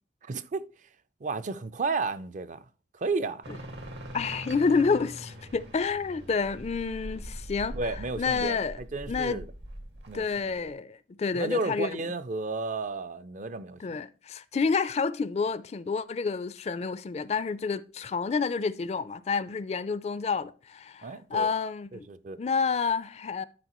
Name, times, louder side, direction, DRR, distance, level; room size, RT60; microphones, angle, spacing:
voice 1, 0.2-0.7 1.2-2.6 2.9-3.4 7.7-9.4 10.1-10.7 11.3-14.0 21.0-21.5 21.9-22.4, right 3 dB, 45° right, 0.5 m, -33 dB
sound 1, 3.4-10.7, equal, 80° right, 1.9 m, -42 dB
voice 2, 4.1-8.8 9.1-9.4 10.1-12.0 13.8-22.1 22.4-23.5, left 5 dB, 35° left, 0.4 m, -29 dB
11.5 x 4.8 x 3.0 m
head